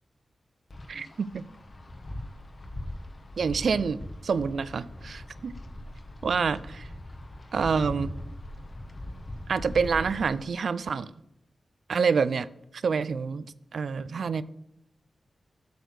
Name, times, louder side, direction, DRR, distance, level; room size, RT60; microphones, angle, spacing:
Wind, 0.7-10.5, left 1 dB, 40° left, 1.1 m, -40 dB
voice 1, 0.9-1.5 3.4-4.0 4.2-5.5 6.2-6.9 7.5-8.1 9.5-11.1 11.9-12.5 12.8-14.4, right 5 dB, 70° right, 0.4 m, -27 dB
8.2 x 6.4 x 6.0 m
wide cardioid pair, 120°, 0 cm